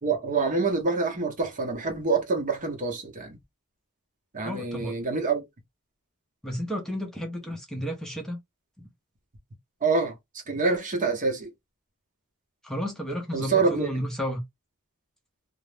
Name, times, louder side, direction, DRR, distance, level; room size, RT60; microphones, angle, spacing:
voice 1, 0.0-3.4 4.3-5.4 9.8-10.1 10.5-11.5 13.3-13.9, right 4 dB, 35° right, 0.7 m, -26 dB
voice 2, 4.4-5.0 6.4-8.4 8.8-8.9 12.6-14.4, equal, ahead, 0.6 m, -32 dB
2.4 x 2.0 x 3.2 m
head